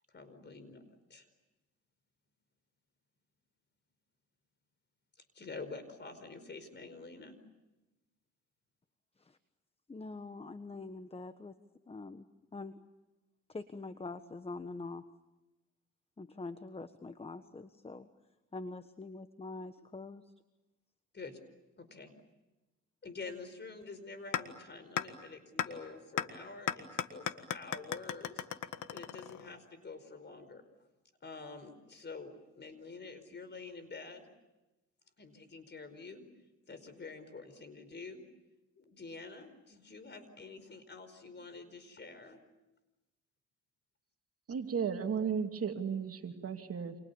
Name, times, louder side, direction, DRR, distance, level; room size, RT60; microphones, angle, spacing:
voice 1, 0.1-0.8 1.1-1.3 5.3-7.4 21.1-21.4 21.8-22.1 23.0-28.4 28.9-30.6 31.2-34.2 35.2-36.2 36.7-38.2 38.7-42.4, left 4 dB, 35° left, 11 dB, 4.9 m, -47 dB
voice 2, 9.9-11.5 11.9-12.3 12.5-12.7 13.5-15.1 16.2-18.1 18.5-20.2, left 3 dB, 20° left, 11 dB, 1.4 m, -44 dB
sound 1, 24.3-24.4 25.0-25.1 25.6-25.7 26.2-26.3 26.7-29.6, left 10 dB, 80° left, 1.7 m, -34 dB
voice 3, 44.5-47.0, right 6 dB, 50° right, 5 dB, 2.7 m, -34 dB
30.0 x 27.5 x 7.1 m, 1.0 s
cardioid pair, 90°, 30 cm